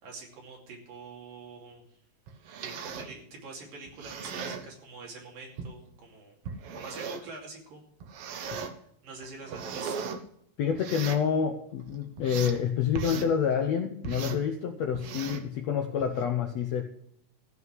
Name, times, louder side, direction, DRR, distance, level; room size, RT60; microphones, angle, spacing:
voice 1, 0.0-2.0 2.6-6.4 6.7-7.8 9.0-10.1, right 3 dB, 70° right, 0 dB, 4.4 m, -45 dB
sound 1, 2.3-3.1 3.9-4.7 5.6-5.7 6.4-7.3 8.0-8.7 9.2-10.2 10.7-11.3 11.8-12.6 12.9-13.3 14.0-14.4 14.9-15.5 16.0-16.2, right 6 dB, 90° right, 1.3 m, -37 dB
voice 2, 10.6-16.8, left 7 dB, 70° left, 4 dB, 1.6 m, -28 dB
15.0 x 5.6 x 9.3 m, 0.69 s
omnidirectional pair, 4.1 m